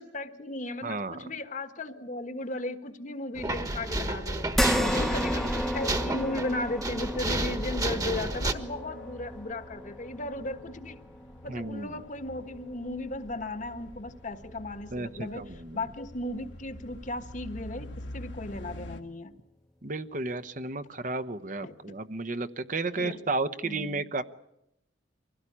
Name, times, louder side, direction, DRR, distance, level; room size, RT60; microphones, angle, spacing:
voice 1, 0.0-4.5 4.9-11.0 11.4-19.3 21.6-21.7 22.9-23.2 23.6-24.0, left 2 dB, 45° left, 10 dB, 1.4 m, -36 dB
voice 2, 0.8-1.3 4.7-5.1 11.5-11.9 14.9-15.8 19.8-24.2, right 3 dB, 45° right, 11 dB, 0.9 m, -33 dB
sound 1, 3.4-8.5, right 1 dB, 20° right, 1.4 m, -31 dB
sound 2, 4.5-19.0, left 1 dB, 85° left, 2.1 m, -48 dB
sound 3, 4.5-13.2 13.6-13.7 15.2-15.3, equal, ahead, 0.9 m, -34 dB
24.5 x 16.5 x 10.0 m, 0.84 s
head